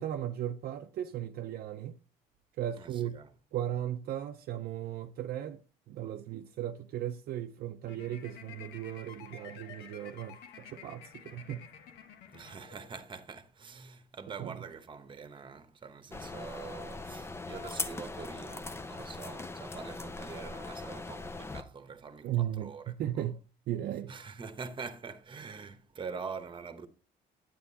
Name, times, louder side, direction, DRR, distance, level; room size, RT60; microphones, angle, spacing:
voice 1, 0.0-2.0 2.6-3.2 3.5-5.6 5.9-11.7 14.4-14.5 22.2-23.4 23.7-24.1, right 11 dB, 65° right, 0.6 m, -36 dB
voice 2, 2.8-3.3 12.3-23.3 24.1-26.9, right 5 dB, 30° right, 1.0 m, -45 dB
sound 1, 7.8-13.1, left 7 dB, 80° left, 1.1 m, -51 dB
sound 2, 16.1-21.6, left 3 dB, 15° left, 0.6 m, -40 dB
9.2 x 9.1 x 2.8 m
cardioid pair, 110°, 17 cm